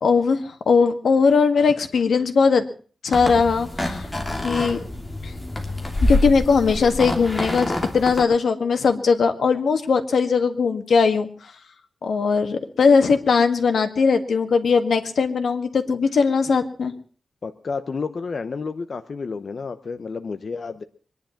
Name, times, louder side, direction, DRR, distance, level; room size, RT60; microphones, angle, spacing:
voice 1, 0.0-2.6 3.0-4.1 4.4-4.8 5.2-5.3 6.0-11.3 12.0-16.9, left 5 dB, 85° left, 7 dB, 1.8 m, -19 dB
sound 1, 3.1-8.2, left 1 dB, 15° left, 2.9 m, -26 dB
voice 2, 17.4-20.8, left 4 dB, 50° left, 9 dB, 0.8 m, -30 dB
23.5 x 10.5 x 5.8 m, 0.42 s
wide cardioid pair, 175°, 0 cm